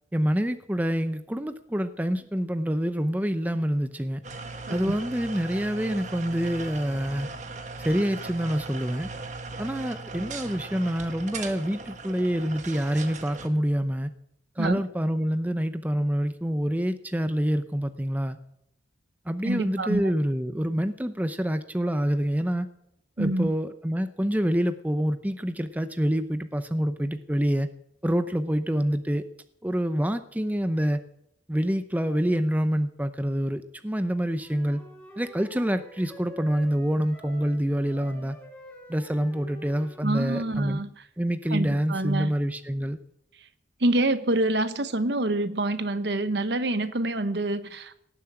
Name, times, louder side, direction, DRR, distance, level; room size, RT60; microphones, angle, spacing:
voice 1, 0.1-4.2 4.7-7.3 7.8-9.1 9.6-14.1 14.6-18.4 19.3-22.7 23.2-27.7 28.0-29.2 29.6-31.0 31.5-34.8 35.2-38.4 38.9-40.8 41.2-43.0, equal, 10° right, 10 dB, 0.6 m, -26 dB
sound 1, 4.2-13.5, right 3 dB, 40° right, 1.4 m, -38 dB
voice 2, 19.4-20.0 23.2-23.5 40.0-40.9 41.5-42.3 43.8-48.0, right 2 dB, 65° right, 12 dB, 1.1 m, -26 dB
Wind instrument woodwind instrument, 34.4-40.6, right 2 dB, 5° left, 4.2 m, -48 dB
18.0 x 7.5 x 8.8 m, 0.77 s
head